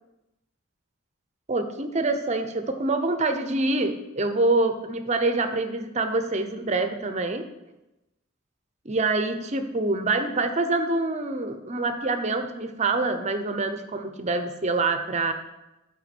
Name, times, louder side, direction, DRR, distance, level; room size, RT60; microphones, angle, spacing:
voice 1, 1.5-7.4 8.8-15.3, right 2 dB, 35° right, 8 dB, 0.7 m, -26 dB
9.0 x 4.9 x 6.0 m, 0.97 s
head